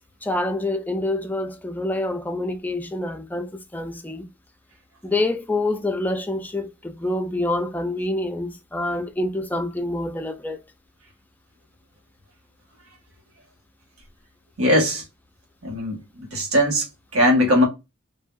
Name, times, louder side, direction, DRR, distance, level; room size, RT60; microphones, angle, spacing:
voice 1, 0.2-4.3 5.0-10.6, left 2 dB, 10° left, 0.4 m, -26 dB
voice 2, 14.6-15.0 15.6-16.8 17.1-17.6, equal, 75° right, 1.6 m, -19 dB
3.6 x 2.7 x 2.2 m
head